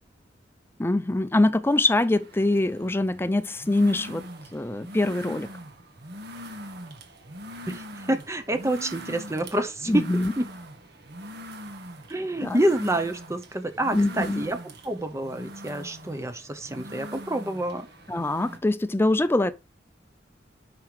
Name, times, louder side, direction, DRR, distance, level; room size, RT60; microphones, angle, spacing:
voice 1, 0.8-4.2 4.5-5.5 9.9-10.3 12.4-12.6 13.9-14.4 18.1-19.5, left 2 dB, 15° left, 0.5 m, -23 dB
sound 1, 1.7-18.6, equal, 60° right, 1.3 m, -42 dB
voice 2, 7.7-10.0 10.4-10.5 12.1-17.9, right 1 dB, 15° right, 0.8 m, -28 dB
5.9 x 5.6 x 4.6 m
head